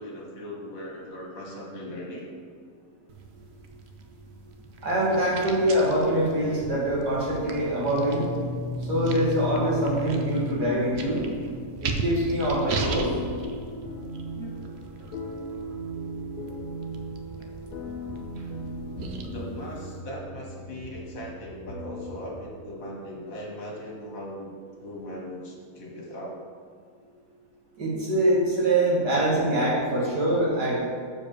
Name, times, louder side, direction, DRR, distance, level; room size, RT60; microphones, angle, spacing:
voice 1, 0.0-2.3 14.3-15.1 17.4-17.5 19.2-24.5 24.8-26.4, equal, 60° left, -2 dB, 1.9 m, -39 dB
sound 1, 3.1-20.0, right 3 dB, 55° right, 0.8 m, -39 dB
voice 2, 4.8-8.2 8.8-11.2 11.8-13.1 16.5-16.6 27.8-30.8, right 1 dB, 85° right, -6 dB, 2.7 m, -24 dB
sound 2, 6.6-22.5, left 1 dB, 80° left, 1.5 m, -37 dB
7.0 x 5.1 x 6.6 m, 2.1 s
omnidirectional pair, 1.7 m